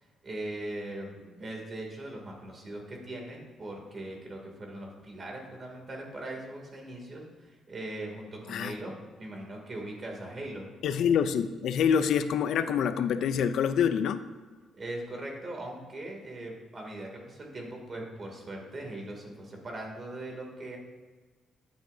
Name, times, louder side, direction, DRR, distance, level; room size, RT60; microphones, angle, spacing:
voice 1, 0.2-8.9 9.2-10.7 14.7-20.8, right 1 dB, 40° right, 0 dB, 2.7 m, -40 dB
voice 2, 10.8-14.3, left 7 dB, 75° left, 11 dB, 0.5 m, -26 dB
12.5 x 9.0 x 2.8 m, 1.4 s
cardioid pair, 90°, 0 cm